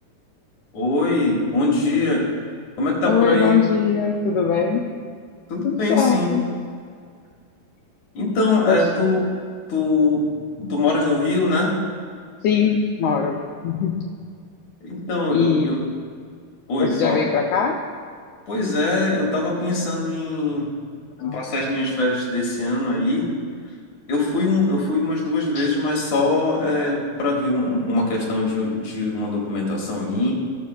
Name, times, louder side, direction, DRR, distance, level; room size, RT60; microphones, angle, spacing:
voice 1, 0.7-2.2 2.8-3.5 5.5-6.3 8.1-9.2 9.7-10.3 10.6-11.7 14.8-15.8 16.7-17.2 18.5-20.7 21.3-23.2 24.1-30.3, left 2 dB, 65° left, -3 dB, 2.5 m, -22 dB
voice 2, 3.0-4.9 5.6-6.5 8.7-8.9 12.4-13.4 13.6-13.9 15.3-15.7 16.8-17.8 21.2-21.4 25.5-25.7, left 6 dB, 85° left, 0 dB, 1.7 m, -21 dB
17.0 x 7.2 x 2.3 m, 2.1 s
omnidirectional pair, 4.1 m